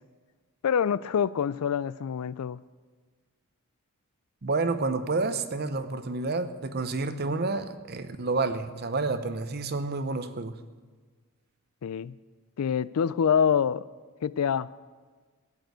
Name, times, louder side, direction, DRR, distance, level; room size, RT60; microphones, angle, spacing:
voice 1, 0.6-2.6 11.8-12.1 12.6-13.8 14.2-14.7, left 7 dB, 85° left, 19 dB, 0.4 m, -26 dB
voice 2, 4.4-10.6, right 3 dB, 45° right, 10 dB, 0.7 m, -29 dB
15.5 x 6.6 x 8.1 m, 1.5 s
head